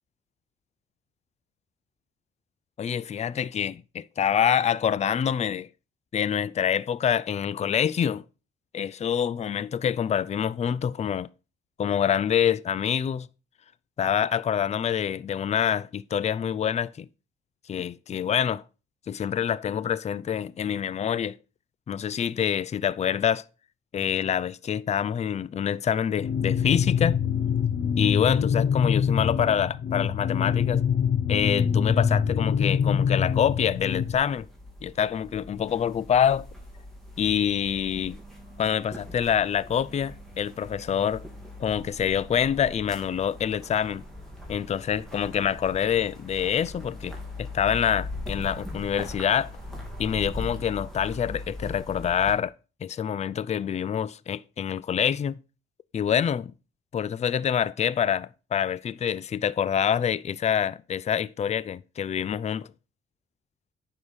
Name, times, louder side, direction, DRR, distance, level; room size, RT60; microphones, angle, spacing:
voice 1, 2.8-5.7 6.1-8.2 8.7-11.3 11.8-13.3 14.0-17.1 17.7-18.6 19.1-21.4 21.9-23.4 23.9-27.2 28.0-30.8 31.3-34.5 34.8-36.5 37.2-38.2 38.6-41.2 41.6-44.0 44.5-49.5 50.0-52.5 52.8-55.4 55.9-56.5 56.9-62.7, left 8 dB, 35° left, 0.5 m, -26 dB
sound 1, 26.2-34.2, left 7 dB, 55° left, 0.9 m, -25 dB
sound 2, 32.7-52.3, left 2 dB, ahead, 3.4 m, -41 dB
9.4 x 6.4 x 5.0 m
cardioid pair, 90°, 20 cm